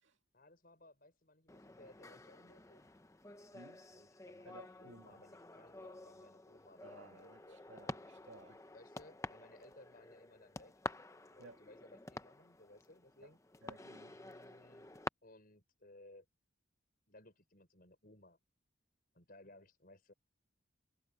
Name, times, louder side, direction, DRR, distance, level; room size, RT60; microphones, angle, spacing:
voice 1, 0.3-2.9 3.9-7.6 8.7-10.7 11.3-13.4 14.1-14.9 15.2-16.3 17.1-18.4 19.1-20.1, left 1 dB, 45° left, 6.1 m, -61 dB
sound 1, 1.5-15.1, left 2 dB, 15° left, 0.7 m, -50 dB
voice 2, 3.5-3.8 4.4-5.2 6.8-8.7 11.4-11.6 13.2-13.3 13.6-14.2, right 2 dB, 65° right, 2.2 m, -58 dB
head